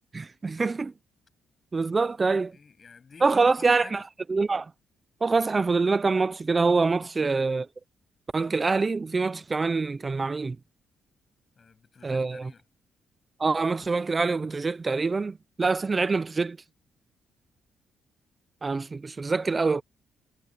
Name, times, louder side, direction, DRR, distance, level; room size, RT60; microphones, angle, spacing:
voice 1, 0.1-0.9 1.7-2.5 3.2-4.0 4.3-4.7 5.2-7.6 8.3-10.6 12.0-12.5 13.4-16.6 18.6-19.8, right 4 dB, 30° right, 0.7 m, -25 dB
voice 2, 2.5-4.0 7.0-7.5 11.6-12.6, left 5 dB, 40° left, 8.0 m, -50 dB
cardioid pair, 90°, 0 cm